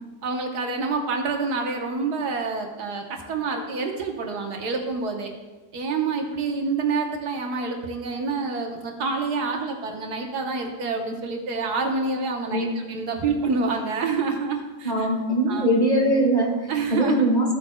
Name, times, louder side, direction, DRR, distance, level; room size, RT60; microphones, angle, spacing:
voice 1, 0.2-5.3 5.7-15.1 15.5-15.8 16.7-17.3, right 4 dB, 75° right, 2 dB, 1.5 m, -27 dB
voice 2, 14.8-17.6, right 1 dB, 25° left, -3 dB, 1.7 m, -22 dB
14.0 x 8.6 x 2.2 m, 1.2 s
omnidirectional pair, 1.7 m